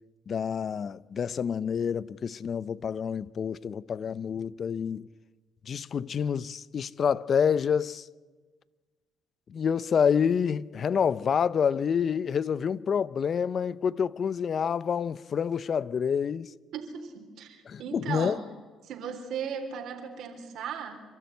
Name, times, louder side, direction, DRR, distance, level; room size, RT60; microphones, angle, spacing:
voice 1, 0.3-5.1 5.7-8.1 9.5-16.5 17.7-18.4, left 7 dB, 50° left, 0.6 m, -28 dB
voice 2, 16.7-18.5 18.8-21.0, right 7 dB, 70° right, 3.9 m, -37 dB
28.0 x 13.0 x 9.5 m
supercardioid pair, 80°, 0 cm